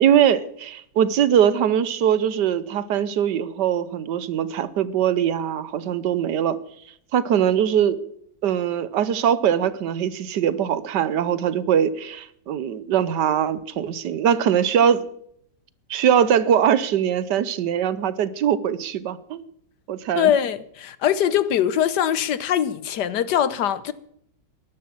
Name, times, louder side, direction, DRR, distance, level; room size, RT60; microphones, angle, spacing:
voice 1, 0.0-6.6 7.1-8.0 8.4-15.1 15.9-19.4 19.9-20.3, right 9 dB, 75° right, 1.4 m, -21 dB
voice 2, 20.2-23.9, left 10 dB, 75° left, 1.4 m, -22 dB
13.5 x 11.5 x 7.2 m
omnidirectional pair, 1.9 m